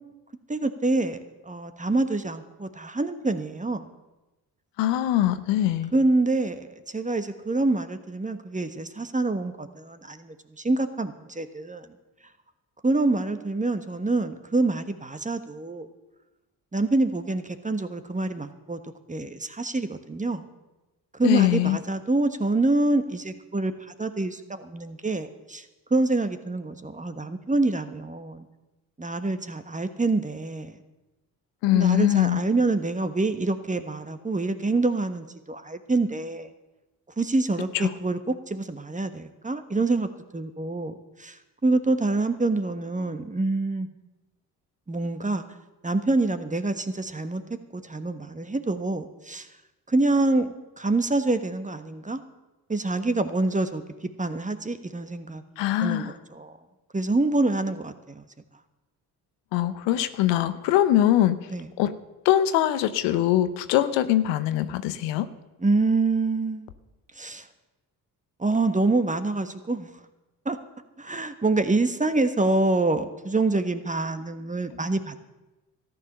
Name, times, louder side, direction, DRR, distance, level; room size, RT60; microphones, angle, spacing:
voice 1, 0.5-3.9 5.9-6.7 6.9-11.9 12.8-15.9 16.7-18.8 19.1-20.4 21.1-25.6 25.9-28.5 29.0-30.8 31.7-36.5 37.2-43.9 44.9-45.4 45.8-47.4 47.7-49.5 49.9-52.2 52.7-55.4 55.8-56.5 56.9-58.2 61.5-61.7 65.6-66.7 67.2-67.5 68.4-69.9 70.4-70.6 71.0-75.2, right 2 dB, 15° right, 9 dB, 1.3 m, -26 dB
voice 2, 4.8-5.9 21.2-21.8 31.6-32.4 37.7-37.9 55.6-56.1 59.5-61.4 61.8-61.9 62.2-65.3, left 13 dB, 80° left, 12 dB, 0.8 m, -22 dB
13.5 x 10.0 x 6.7 m, 1.1 s
hypercardioid pair, 55°, 43 cm